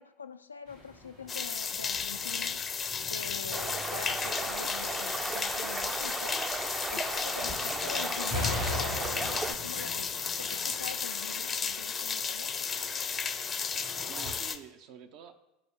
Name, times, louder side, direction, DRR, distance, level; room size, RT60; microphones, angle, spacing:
voice 1, 0.0-6.4 6.9-12.7, left 5 dB, 85° left, 0.3 m, -44 dB
sound 1, 0.7-14.3, left 2 dB, 80° right, 2.0 m, -43 dB
sound 2, 1.3-14.6, left 6 dB, 30° left, 0.6 m, -34 dB
sound 3, 3.5-9.5, right 3 dB, 20° right, 0.5 m, -36 dB
voice 2, 7.5-7.9 11.2-11.4 13.6-15.3, right 8 dB, 55° right, 0.8 m, -50 dB
13.0 x 4.8 x 2.8 m
figure-of-eight pair, 75°, 0 cm